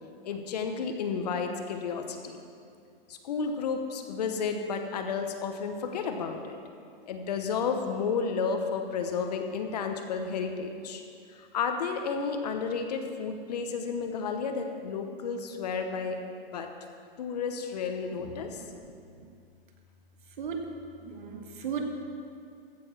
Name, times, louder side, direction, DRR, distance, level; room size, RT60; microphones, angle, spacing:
voice 1, 0.2-2.4 3.1-6.6 7.1-11.0 11.3-16.2 16.5-16.7 17.2-18.6, left 5 dB, 45° left, 5 dB, 1.0 m, -32 dB
voice 2, 18.5-18.9 19.2-19.3 20.4-20.6 21.0-21.8, right 7 dB, 55° right, 4 dB, 1.6 m, -37 dB
15.0 x 6.8 x 6.0 m, 2.4 s
hypercardioid pair, 170°, 29 cm